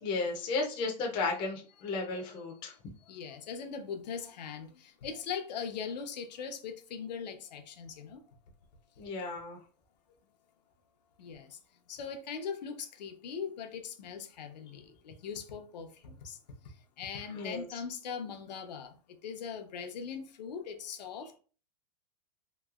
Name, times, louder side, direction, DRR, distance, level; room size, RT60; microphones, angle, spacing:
voice 1, 0.0-2.7 9.0-9.6 17.3-17.6, left 3 dB, 25° left, 0.5 m, -34 dB
voice 2, 3.1-8.2 11.2-11.6 11.9-16.4 16.6-19.0 19.2-21.4, left 6 dB, 85° left, 0.8 m, -40 dB
3.0 x 2.8 x 2.3 m
supercardioid pair, 165°, 21 cm